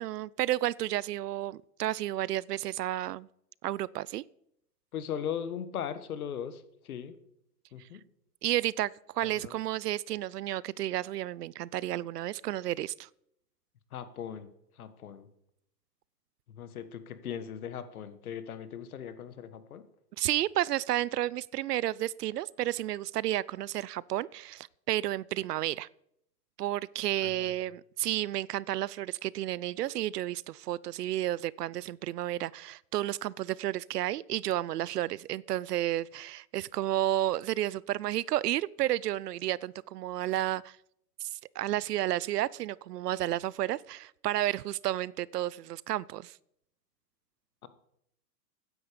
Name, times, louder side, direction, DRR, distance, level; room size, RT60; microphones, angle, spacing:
voice 1, 0.0-3.3 3.6-4.2 8.4-13.1 20.2-25.9 26.6-40.8 41.3-46.3, right 14 dB, 70° right, 0.5 m, -32 dB
voice 2, 4.9-7.2 7.7-8.0 9.2-9.6 13.9-15.3 16.5-19.9 27.2-27.5 47.6-47.7, left 8 dB, 60° left, 1.5 m, -39 dB
15.0 x 9.9 x 5.0 m
hypercardioid pair, 180°, 49 cm